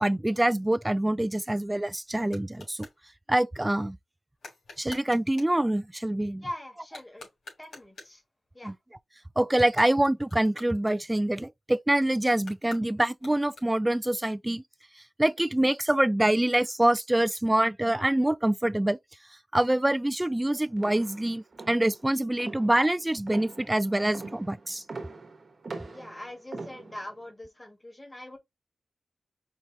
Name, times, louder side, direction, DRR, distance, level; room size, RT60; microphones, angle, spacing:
voice 1, 0.0-2.9 3.3-4.0 4.8-6.4 8.6-8.7 9.4-14.6 15.2-19.0 19.5-24.8, right 1 dB, 15° right, 0.3 m, -25 dB
sound 1, 1.3-3.0 4.4-5.6 6.8-8.3 9.6-11.4 12.4-14.0, left 2 dB, 85° left, 3.0 m, -49 dB
voice 2, 6.4-7.3 7.6-8.2 8.5-8.7 25.9-28.4, left 1 dB, 20° left, 2.0 m, -42 dB
sound 2, 20.8-27.2, right 3 dB, 55° right, 1.4 m, -43 dB
5.5 x 3.1 x 2.8 m
cardioid pair, 70°, 0 cm